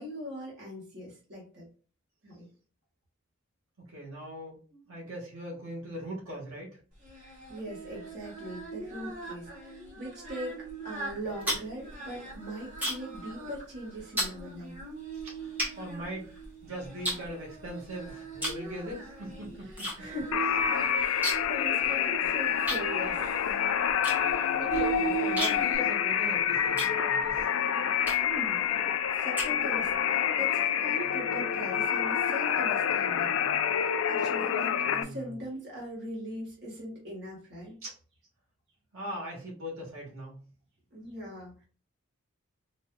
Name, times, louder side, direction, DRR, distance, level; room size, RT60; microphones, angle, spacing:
voice 1, 0.0-1.7 2.2-2.5 7.1-10.5 10.8-14.7 19.6-20.4 20.8-23.6 28.2-28.6 29.1-33.4 33.7-37.8 40.9-41.6, equal, 50° right, -4 dB, 1.4 m, -41 dB
voice 2, 3.8-6.8 15.1-16.3 16.6-19.9 20.7-20.8 24.3-27.5 34.8-35.3 37.8-37.9 38.9-40.4, equal, 80° right, -3 dB, 1.4 m, -40 dB
Singing, 7.0-25.8, right 5 dB, 35° right, 1.2 m, -40 dB
sound 1, 11.1-13.2 13.5-13.8 14.2-14.4 15.0-15.1 15.6-16.6 17.0-17.9 18.4-18.7 19.0-20.0 20.2-20.3 20.6-21.6 21.9-22.0 22.7-27.4 28.0-28.4 28.9-30.0, equal, 10° right, 0.8 m, -34 dB
sound 2, 20.3-35.0, left 8 dB, 70° left, 0.3 m, -28 dB
4.1 x 2.5 x 2.2 m, 0.39 s
head